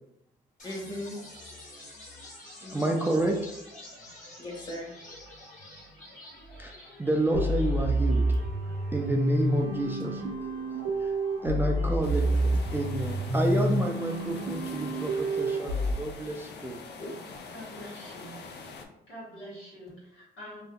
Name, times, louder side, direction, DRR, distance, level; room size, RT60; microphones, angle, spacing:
sound 1, 0.6-14.6, left 1 dB, 40° left, 1.4 m, -50 dB
voice 1, 0.6-1.2 2.6-2.9 4.4-4.9 11.5-12.5 17.0-17.1, left 1 dB, 20° left, -3 dB, 1.1 m, -39 dB
voice 2, 2.7-3.5 6.6-6.7 7.0-8.3 8.9-10.2 11.0-11.1 11.4-16.8, right 2 dB, 10° right, 0 dB, 0.4 m, -29 dB
sound 2, 7.3-15.9, right 1 dB, 85° right, 0.6 m, -28 dB
sound 3, 12.0-18.9, left 4 dB, 60° left, 0.5 m, -44 dB
voice 3, 17.5-18.4 19.1-20.6, equal, 85° left, -6 dB, 1.4 m, -45 dB
2.7 x 2.1 x 3.7 m, 0.82 s
cardioid pair, 90°, 20 cm